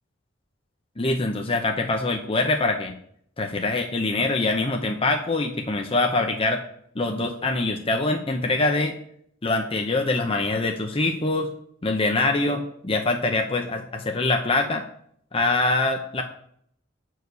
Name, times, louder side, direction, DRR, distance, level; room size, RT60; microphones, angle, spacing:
voice 1, 1.0-3.0 3.4-6.6 6.9-8.9 9.4-11.5 11.8-14.8 15.3-16.2, left 2 dB, 30° left, 3 dB, 0.8 m, -24 dB
7.9 x 4.7 x 6.7 m, 0.65 s
head